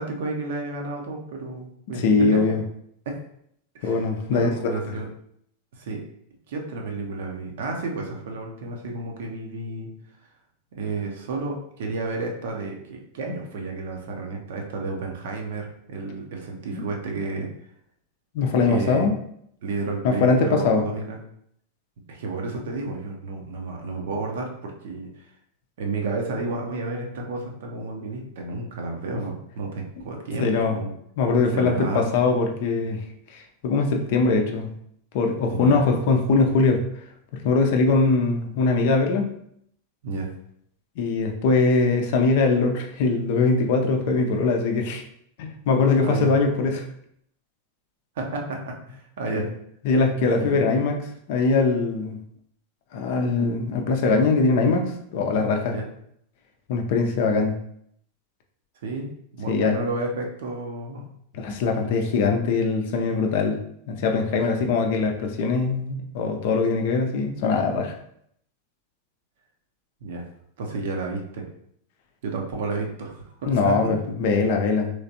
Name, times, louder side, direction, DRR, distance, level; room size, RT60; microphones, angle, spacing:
voice 1, 0.0-2.5 3.1-3.2 3.7-5.1 5.7-6.1 6.5-9.9 10.7-17.5 18.6-19.1 19.6-21.2 22.1-25.1 25.8-30.9 31.5-32.1 35.5-35.8 40.0-40.3 46.0-46.3 48.2-49.5 50.4-50.9 55.7-55.9 58.8-61.1 64.5-64.7 70.0-70.3 70.6-71.5 72.2-74.0, right 3 dB, 55° right, 1 dB, 0.6 m, -31 dB
voice 2, 2.0-2.6 3.8-4.5 16.7-16.9 18.3-19.1 20.0-20.8 30.4-30.8 31.2-33.0 33.3-34.7 35.1-36.8 37.3-39.3 41.0-45.0 45.4-46.9 49.3-49.5 49.8-51.0 51.3-52.2 52.9-55.8 56.7-57.5 59.5-59.8 61.3-63.6 63.9-67.9 73.5-74.9, left 4 dB, 50° left, 4 dB, 0.5 m, -22 dB
3.2 x 3.1 x 2.6 m, 0.70 s
figure-of-eight pair, 90°, 0 cm